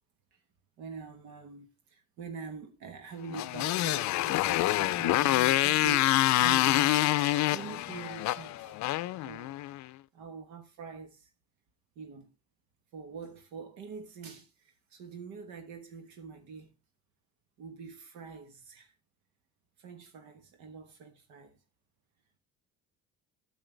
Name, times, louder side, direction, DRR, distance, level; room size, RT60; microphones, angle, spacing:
voice 1, 0.8-8.8 9.2-9.6 10.1-11.3 11.9-12.3 12.9-16.8 17.6-18.9 19.8-21.6, right 5 dB, 85° right, 1.3 m, -44 dB
Motorcycle, 3.3-9.8, left 16 dB, 70° left, 0.5 m, -26 dB
9.0 x 7.0 x 3.3 m
supercardioid pair, 80°, 29 cm